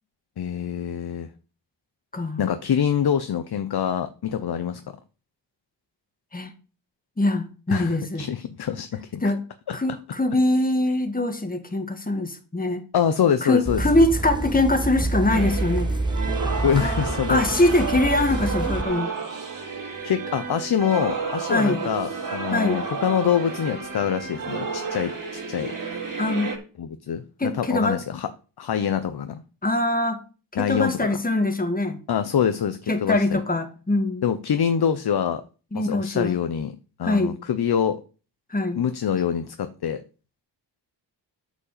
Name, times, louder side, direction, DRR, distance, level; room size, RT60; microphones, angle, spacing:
voice 1, 0.4-1.3 2.4-4.8 7.7-9.2 9.7-9.8 12.9-13.8 16.5-17.8 20.0-25.7 26.8-28.3 28.6-29.4 30.5-31.2 32.1-33.4 34.2-35.4 35.7-38.0 38.7-40.0, left 8 dB, 55° left, 0.9 m, -25 dB
voice 2, 2.1-2.5 6.3-6.5 7.2-8.3 9.2-9.4 9.7-12.8 13.4-15.9 16.8-16.9 17.3-19.1 21.5-21.9 22.5-22.8 26.2-26.5 27.4-28.0 29.6-30.2 30.5-32.0 32.9-34.2 35.7-36.4 37.0-37.3 38.5-38.8, left 2 dB, 20° left, 1.9 m, -23 dB
sound 1, 13.7-18.8, right 2 dB, 10° right, 1.1 m, -27 dB
sound 2, 15.3-26.6, right 5 dB, 45° right, 3.7 m, -31 dB
8.6 x 5.3 x 6.9 m
cardioid pair, 65°, 46 cm